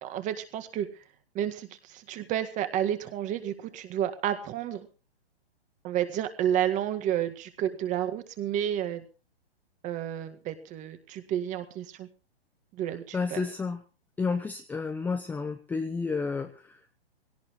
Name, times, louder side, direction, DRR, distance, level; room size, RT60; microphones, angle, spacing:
voice 1, 0.0-0.9 1.3-4.9 5.8-9.0 9.8-12.1 12.7-13.4, right 10 dB, 25° right, 9 dB, 1.9 m, -31 dB
voice 2, 13.1-13.8 14.2-17.0, left 4 dB, 5° left, 6 dB, 0.7 m, -31 dB
21.0 x 17.5 x 3.2 m, 0.34 s
hypercardioid pair, 135°, 31 cm